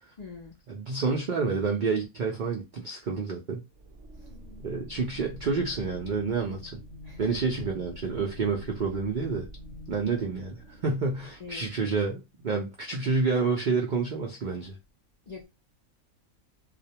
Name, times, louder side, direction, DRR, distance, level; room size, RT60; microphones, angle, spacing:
voice 1, 0.2-0.6 4.2-4.3 7.0-7.3 11.4-11.7 15.3-15.5, left 4 dB, 75° left, 0.3 m, -43 dB
voice 2, 0.7-3.6 4.6-6.8 7.2-9.5 9.9-14.8, right 4 dB, 85° right, 0.4 m, -29 dB
sound 1, 3.7-12.0, left 1 dB, 60° right, 0.8 m, -46 dB
2.4 x 2.1 x 2.7 m
omnidirectional pair, 1.5 m